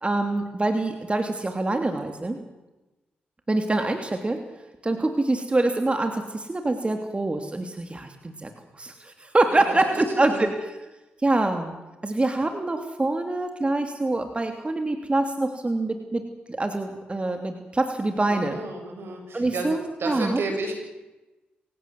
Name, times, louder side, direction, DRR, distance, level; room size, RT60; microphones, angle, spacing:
voice 1, 0.0-2.4 3.5-4.4 4.8-10.7 11.2-11.8 12.0-18.6 19.3-20.4, right 2 dB, 30° right, 6 dB, 3.0 m, -25 dB
voice 2, 9.7-10.5 18.3-19.7 20.0-20.7, right 3 dB, 70° right, 4 dB, 7.0 m, -32 dB
27.0 x 17.0 x 7.8 m, 1.1 s
supercardioid pair, 45°, 4 cm